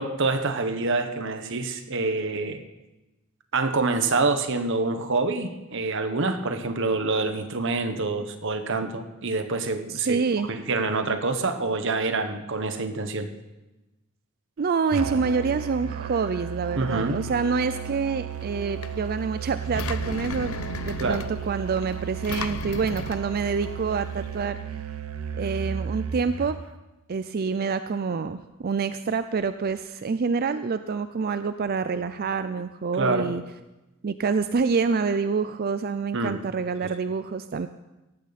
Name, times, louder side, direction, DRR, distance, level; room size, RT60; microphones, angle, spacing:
voice 1, 0.0-2.6 3.5-10.2 10.5-13.3 16.8-17.2 21.0-21.2 33.0-33.3 36.1-36.4, right 3 dB, 60° right, 8 dB, 1.2 m, -26 dB
voice 2, 9.9-10.5 14.6-24.6 25.4-26.6 27.1-33.4 34.0-37.7, right 5 dB, 45° right, 11 dB, 0.4 m, -27 dB
Musical instrument, 14.9-26.6, right 7 dB, 85° right, 0.9 m, -34 dB
Engine, 18.3-24.4, left 4 dB, 85° left, 0.8 m, -37 dB
17.5 x 14.0 x 4.2 m, 1.0 s
head